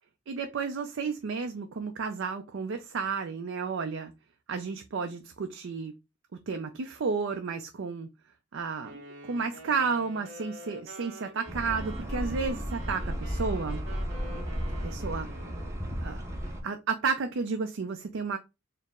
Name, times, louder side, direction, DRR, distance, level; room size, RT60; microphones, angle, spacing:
voice 1, 0.3-4.1 4.5-6.0 6.3-8.1 8.5-13.8 14.8-15.3 16.0-16.2 16.6-18.4, right 5 dB, 70° right, 0.4 m, -32 dB
Wind instrument woodwind instrument, 8.8-15.8, right 1 dB, 55° right, 1.1 m, -47 dB
sound 1, 11.5-16.6, equal, 15° right, 0.7 m, -34 dB
4.4 x 2.0 x 3.5 m
head